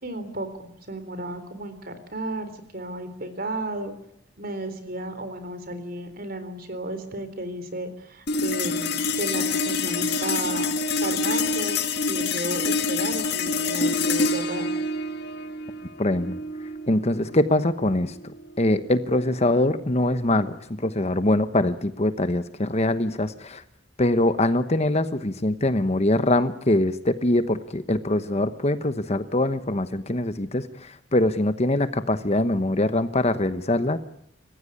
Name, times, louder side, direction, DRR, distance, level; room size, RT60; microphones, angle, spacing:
voice 1, 0.0-3.9 4.4-10.7 11.0-11.8 12.1-14.7, right 2 dB, 50° right, 10 dB, 3.9 m, -33 dB
sound 1, 8.3-18.9, left 3 dB, 55° left, 1.8 m, -27 dB
voice 2, 16.0-16.4 16.9-18.2 18.6-23.6 24.0-34.0, left 1 dB, 35° left, 11 dB, 1.1 m, -23 dB
28.5 x 15.5 x 9.7 m, 0.73 s
head